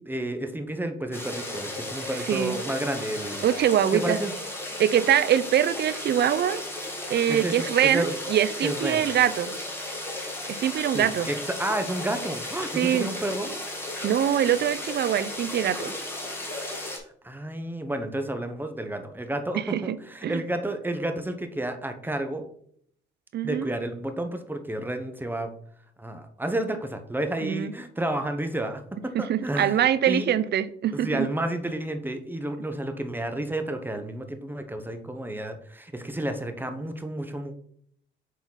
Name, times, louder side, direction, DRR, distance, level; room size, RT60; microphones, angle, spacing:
voice 1, 0.0-3.5 3.9-4.3 7.3-8.2 8.6-9.0 10.9-13.5 17.2-22.5 23.4-25.5 26.0-29.8 30.1-30.3 30.9-37.5, right 1 dB, 10° right, 1.0 m, -31 dB
sound 1, 1.1-17.0, left 1 dB, 10° left, 2.1 m, -35 dB
voice 2, 2.3-2.6 3.4-4.2 4.8-6.6 7.1-9.5 10.6-11.3 12.8-13.1 14.0-15.9 19.5-20.0 20.2-20.4 23.3-23.7 27.4-27.7 29.1-31.3, right 10 dB, 60° right, 0.6 m, -23 dB
7.3 x 4.1 x 4.1 m
cardioid pair, 90°, 20 cm